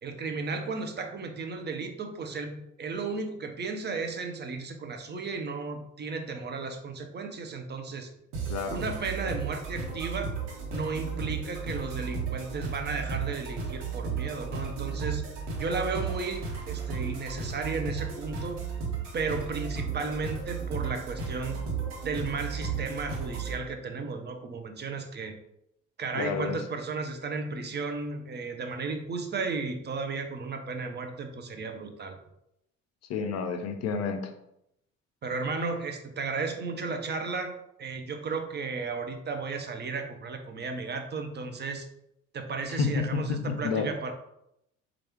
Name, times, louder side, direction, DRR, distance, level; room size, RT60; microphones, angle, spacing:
voice 1, 0.0-8.1 8.7-10.4 10.7-15.2 15.6-18.6 19.1-21.6 22.0-25.3 26.0-32.2 35.2-37.5 37.8-41.9 42.3-44.1, right 4 dB, 25° right, 5 dB, 0.6 m, -34 dB
sound 1, 8.3-23.6, right 5 dB, 70° right, 1.1 m, -34 dB
voice 2, 26.1-26.6 33.1-34.2 42.8-43.0 43.6-43.9, left 5 dB, 45° left, 6 dB, 0.6 m, -29 dB
4.5 x 2.5 x 3.1 m, 0.80 s
figure-of-eight pair, 55°, 38 cm